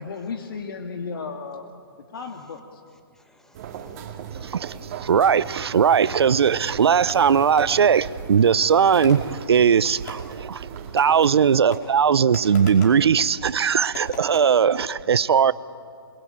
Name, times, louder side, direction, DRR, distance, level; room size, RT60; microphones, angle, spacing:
voice 1, 0.0-1.7 2.1-2.8, left 5 dB, 60° left, 5 dB, 2.1 m, -34 dB
voice 2, 3.1-5.1 12.8-12.9, left 1 dB, 5° left, 5 dB, 1.6 m, -60 dB
sound 1, 3.5-11.6, right 7 dB, 35° right, 2.3 m, -38 dB
voice 3, 4.4-4.7 5.0-10.7 10.9-15.5, right 7 dB, 80° right, 17 dB, 0.7 m, -19 dB
Fireworks, 7.1-8.0 9.0-10.4 11.0-11.4 11.7-13.1 13.9-14.4, left 3 dB, 45° left, 5.0 m, -40 dB
28.0 x 22.0 x 8.9 m, 2.2 s
hypercardioid pair, 155°, 13 cm